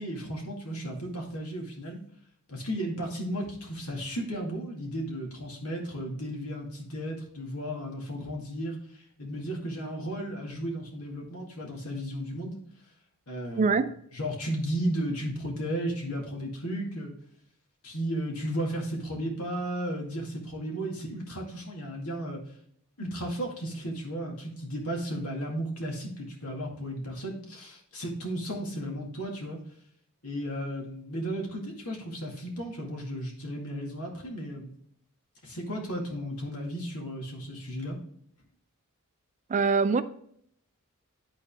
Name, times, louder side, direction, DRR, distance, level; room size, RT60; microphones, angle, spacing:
voice 1, 0.0-2.0 2.5-12.6 13.3-13.8 14.1-17.1 17.8-22.4 23.0-29.6 30.2-34.7 35.4-38.0, equal, 75° left, 2.1 m, -34 dB
voice 2, 13.6-14.0 39.5-40.0, right 4 dB, 35° right, 0.3 m, -23 dB
11.0 x 4.1 x 3.5 m
head